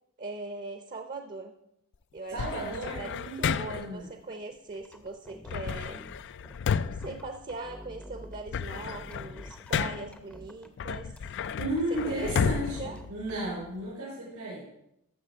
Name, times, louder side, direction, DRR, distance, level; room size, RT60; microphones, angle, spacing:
voice 1, 0.2-1.5 2.1-6.0 6.8-11.1 11.9-12.3 12.6-13.0, right 3 dB, 40° right, 6 dB, 0.7 m, -41 dB
voice 2, 2.3-4.1 11.6-14.6, right 1 dB, 90° right, -7 dB, 4.9 m, -34 dB
sound 1, 2.4-4.0 5.5-7.9 8.3-10.2 10.8-13.8, left 7 dB, 55° left, 0.3 m, -32 dB
sound 2, 4.7-8.4 8.7-10.7 10.9-13.4, equal, 5° left, 0.6 m, -49 dB
13.5 x 6.7 x 4.5 m, 0.81 s
head